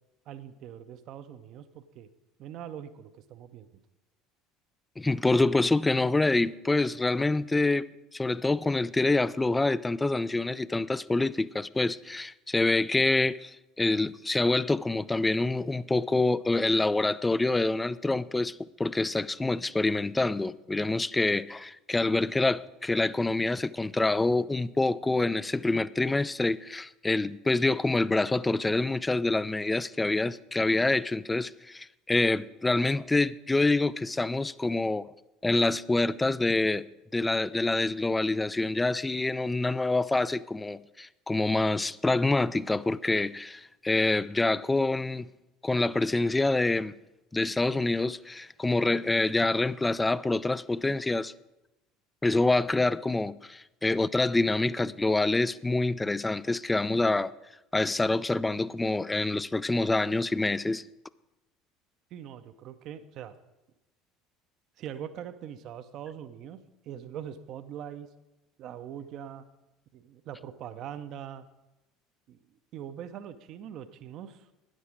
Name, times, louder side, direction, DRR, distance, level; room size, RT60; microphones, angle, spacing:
voice 1, 0.3-2.1 2.4-3.7 62.1-63.3 64.8-68.1 68.6-69.5 69.9-71.5 72.3-74.5, right 9 dB, 45° right, 0.6 m, -42 dB
voice 2, 5.0-7.9 8.1-35.1 35.4-36.9 37.1-45.3 45.6-46.9 47.3-51.3 52.2-57.3 57.7-60.8, left 2 dB, 10° left, 0.3 m, -26 dB
12.5 x 10.0 x 4.8 m
figure-of-eight pair, 65°, 0 cm